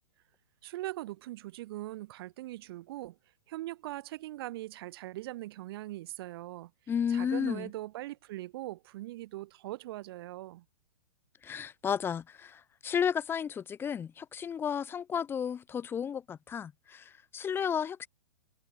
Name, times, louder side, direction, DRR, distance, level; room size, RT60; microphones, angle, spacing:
voice 1, 0.6-3.2 3.5-6.7 7.1-10.6, right 16 dB, 40° right, 0.6 m, -41 dB
voice 2, 6.9-7.7 11.4-18.1, left 7 dB, 10° left, 0.6 m, -33 dB
figure-of-eight pair, 115°, 19 cm